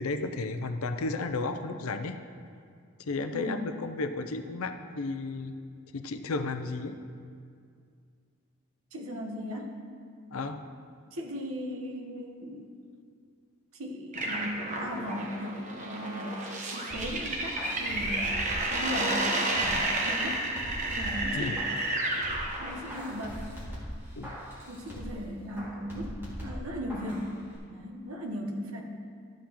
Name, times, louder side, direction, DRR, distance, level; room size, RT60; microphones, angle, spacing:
voice 1, 0.0-2.2 3.0-5.6 5.9-7.0 10.3-10.6 21.3-21.6 24.2-24.3, left 3 dB, 70° left, 8 dB, 0.5 m, -33 dB
voice 2, 3.3-3.7 8.9-9.8 11.1-12.7 13.7-16.4 16.7-18.3 18.7-20.5 20.9-21.6 22.6-23.4 24.7-27.3 27.7-28.8, equal, 70° right, 2 dB, 1.0 m, -37 dB
sound 1, 14.1-23.0, right 2 dB, 35° right, 1.0 m, -31 dB
sound 2, 16.9-19.9 20.2-21.9 22.2-25.2 25.6-27.2 27.5-27.6, equal, 10° right, 2.1 m, -41 dB
12.5 x 7.4 x 3.0 m, 2.2 s
head